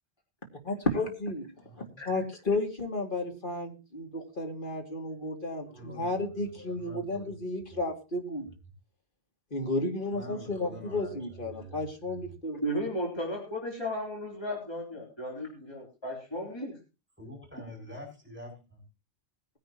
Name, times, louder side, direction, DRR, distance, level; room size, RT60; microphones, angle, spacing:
voice 1, 0.6-1.5 1.8-8.5 9.5-12.6, left 2 dB, 50° left, 2 dB, 2.8 m, -33 dB
voice 2, 1.6-2.0 5.7-7.3 7.7-7.8 10.1-12.3 17.2-18.8, equal, 10° right, -1 dB, 7.9 m, -46 dB
voice 3, 12.6-16.7, equal, 25° left, -2 dB, 3.7 m, -34 dB
20.0 x 10.5 x 3.0 m, 0.30 s
omnidirectional pair, 1.1 m